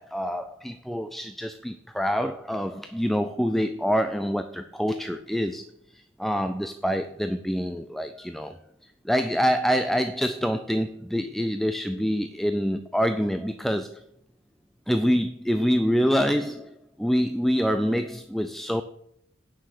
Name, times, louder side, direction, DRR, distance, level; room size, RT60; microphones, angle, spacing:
voice 1, 0.0-5.6 5.9-8.5 9.0-14.0 14.9-18.8, equal, ahead, 8 dB, 0.4 m, -26 dB
9.4 x 5.9 x 7.7 m, 0.74 s
head